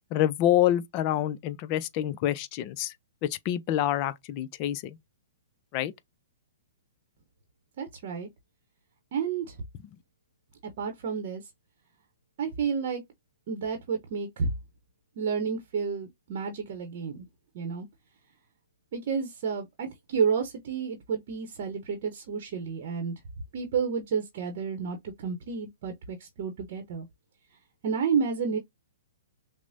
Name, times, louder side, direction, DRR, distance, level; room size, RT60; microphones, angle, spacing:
voice 1, 0.1-2.9 3.2-5.0 5.7-5.9, left 12 dB, 35° left, 0.4 m, -27 dB
voice 2, 7.8-8.3 9.1-9.6 10.8-11.4 12.4-13.0 13.5-14.5 15.2-17.2 17.5-17.9 18.9-23.1 23.5-27.1 27.8-28.6, right 6 dB, 50° right, 0.8 m, -30 dB
5.9 x 2.1 x 2.5 m
figure-of-eight pair, 120°, 0 cm